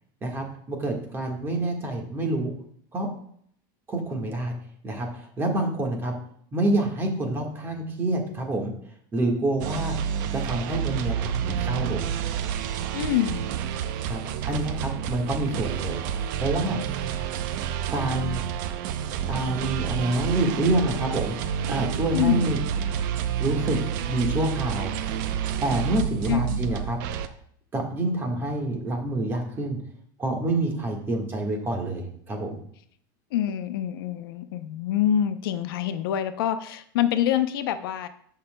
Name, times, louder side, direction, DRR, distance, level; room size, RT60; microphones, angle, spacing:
voice 1, 0.2-2.5 2.9-3.1 3.9-4.5 4.8-6.1 6.5-8.7 9.1-10.0 10.3-12.0 14.1-16.0 16.4-17.3 17.9-18.7 19.3-22.6 23.4-23.8 24.1-24.9 25.6-27.0 27.7-29.8 30.2-32.6, right 1 dB, 20° right, 2 dB, 1.5 m, -27 dB
sound 1, 9.6-27.3, right 9 dB, 60° right, 0.6 m, -29 dB
voice 2, 12.9-13.4 22.1-22.4 26.3-26.6 33.3-38.1, left 11 dB, 90° left, 10 dB, 0.6 m, -25 dB
13.5 x 5.7 x 2.2 m, 0.64 s
supercardioid pair, 150°, 12 cm